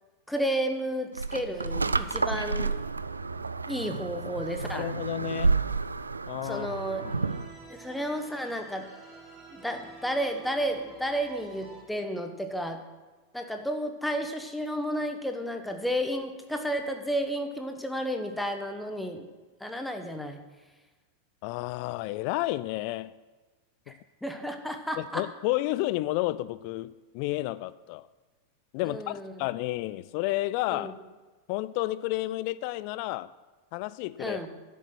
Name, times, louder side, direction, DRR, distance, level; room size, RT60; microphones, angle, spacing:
voice 1, 0.3-2.8 3.7-4.9 6.4-7.0 7.7-8.9 9.5-12.8 13.3-19.3 19.6-20.4 23.9-24.0 24.2-25.3 28.9-29.3 30.7-30.9 34.2-34.5, equal, 5° left, 6 dB, 1.0 m, -32 dB
sound 1, 1.2-7.5, right 4 dB, 80° right, 0.3 m, -30 dB
voice 2, 4.7-5.6 6.3-6.8 7.0-7.2 21.4-23.1 23.9-24.0 25.0-28.1 28.7-30.9 31.5-33.3 33.7-34.4, left 17 dB, 45° left, 17 dB, 0.3 m, -31 dB
sound 2, 6.7-11.8, right 4 dB, 20° right, 2.4 m, -50 dB
10.5 x 8.3 x 6.1 m, 1.3 s
figure-of-eight pair, 90°, 0 cm